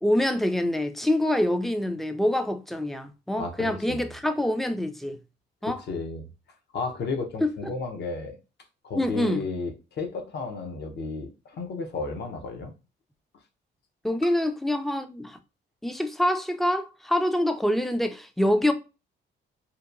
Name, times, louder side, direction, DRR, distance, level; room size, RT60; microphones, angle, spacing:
voice 1, 0.0-5.2 5.6-5.8 7.4-7.7 9.0-9.4 14.0-15.4 15.8-18.7, left 1 dB, ahead, 0.3 m, -25 dB
voice 2, 3.4-4.1 5.9-6.3 6.7-8.4 8.8-12.7, left 4 dB, 60° left, 0.7 m, -33 dB
2.8 x 2.2 x 2.4 m
cardioid pair, 90°, 20 cm